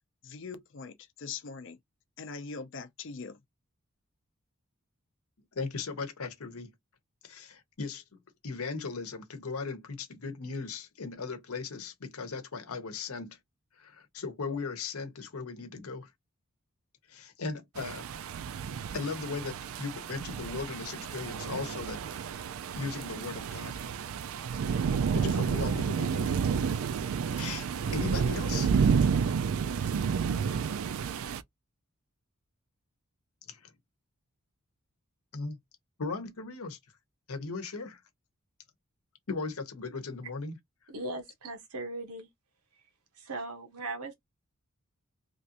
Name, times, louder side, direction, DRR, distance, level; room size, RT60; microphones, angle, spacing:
voice 1, 0.2-1.8 2.2-3.4, left 5 dB, 55° left, 0.5 m, -42 dB
voice 2, 5.6-6.7 7.2-8.0 8.4-13.4 13.8-16.1 17.1-18.1 18.9-22.0 22.7-23.9 25.1-26.4 27.3-28.7 33.5-33.7 35.3-35.6 36.0-36.8 37.3-38.0 39.3-40.6, left 4 dB, 80° left, 0.9 m, -37 dB
sound 1, 17.8-31.4, right 6 dB, 70° right, 0.3 m, -30 dB
voice 3, 40.9-42.3 43.2-44.1, right 2 dB, 85° right, 1.0 m, -38 dB
3.2 x 2.5 x 2.8 m
head